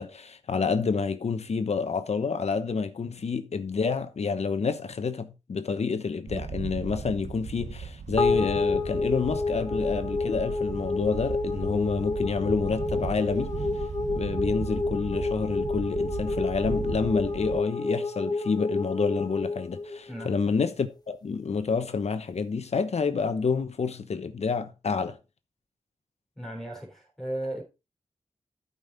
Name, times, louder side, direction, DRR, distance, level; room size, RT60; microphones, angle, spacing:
voice 1, 0.0-13.5 14.1-25.2, left 5 dB, 65° left, 1.0 m, -28 dB
Wind, 6.3-17.6, right 5 dB, 80° right, 1.1 m, -36 dB
sound 1, 8.2-20.7, left 3 dB, 35° left, 1.1 m, -30 dB
voice 2, 26.4-27.6, right 1 dB, 5° left, 3.8 m, -35 dB
12.5 x 5.4 x 4.0 m
wide cardioid pair, 125°, 12 cm